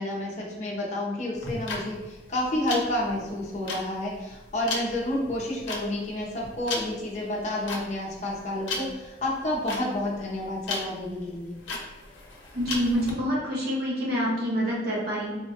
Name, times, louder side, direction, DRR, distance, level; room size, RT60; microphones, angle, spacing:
voice 1, 0.0-11.6, left 1 dB, 40° left, -3 dB, 0.6 m, -30 dB
sound 1, 1.4-13.1, left 3 dB, 90° left, 0.6 m, -36 dB
voice 2, 12.5-15.4, equal, 55° right, -5 dB, 0.8 m, -27 dB
3.2 x 2.2 x 2.8 m, 1.1 s
head